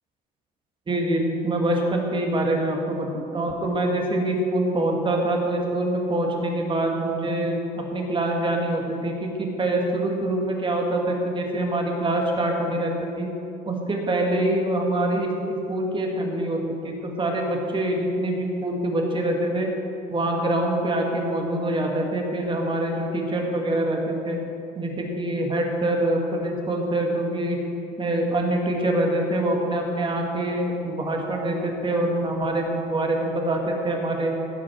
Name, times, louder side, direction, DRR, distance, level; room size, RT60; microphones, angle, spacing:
voice 1, 0.9-13.3 13.7-19.7 20.1-24.4 24.8-27.6 28.0-34.3, right 1 dB, 30° right, 1 dB, 2.0 m, -25 dB
16.0 x 6.4 x 5.9 m, 2.8 s
cardioid pair, 110°, 17 cm